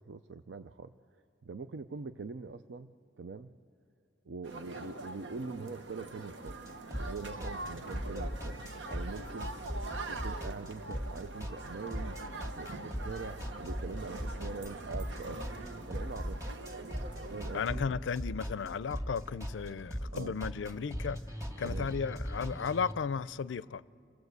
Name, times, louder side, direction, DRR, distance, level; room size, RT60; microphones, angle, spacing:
voice 1, 0.0-3.5 4.3-6.6 7.0-8.6 8.9-9.5 10.1-15.5 15.9-16.4 17.3-17.8 20.1-20.4 21.6-21.9, right 4 dB, 70° right, 0.5 m, -43 dB
sound 1, 4.4-17.7, right 2 dB, 90° right, 1.2 m, -44 dB
sound 2, 6.5-22.9, equal, 15° right, 1.9 m, -39 dB
voice 2, 17.5-21.2 21.6-23.8, left 6 dB, 85° left, 0.4 m, -34 dB
28.0 x 19.0 x 8.1 m
head